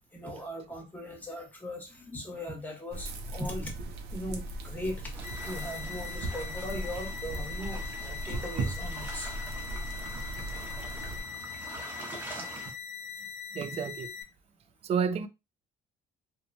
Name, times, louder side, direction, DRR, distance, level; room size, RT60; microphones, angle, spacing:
voice 1, 0.1-3.7 4.1-5.2 5.4-9.4 11.1-11.2, left 1 dB, 10° left, 1.0 m, -39 dB
sound 1, 2.9-11.2, right 2 dB, 75° right, 0.6 m, -38 dB
sound 2, 5.1-12.7, right 2 dB, 10° right, 0.8 m, -45 dB
sound 3, 5.2-14.2, left 7 dB, 45° left, 0.7 m, -42 dB
voice 2, 13.5-14.1 14.8-15.3, right 6 dB, 40° right, 0.4 m, -30 dB
2.9 x 2.1 x 2.6 m
cardioid pair, 110°, 17 cm